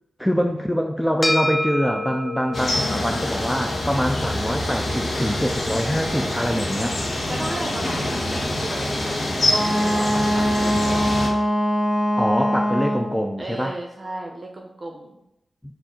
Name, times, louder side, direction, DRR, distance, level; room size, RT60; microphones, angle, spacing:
voice 1, 0.2-7.0 12.2-13.8, equal, 5° left, 3 dB, 0.4 m, -24 dB
sound 1, 1.2-9.8, left 1 dB, 20° left, 0.9 m, -32 dB
sound 2, 2.5-11.3, left 1 dB, 60° left, 0.9 m, -26 dB
voice 2, 7.0-11.2 13.4-15.2, right 1 dB, 40° right, 0 dB, 0.6 m, -35 dB
Wind instrument woodwind instrument, 9.5-13.2, equal, 10° right, 1.7 m, -22 dB
4.5 x 2.5 x 4.4 m, 0.85 s
cardioid pair, 60°, 0 cm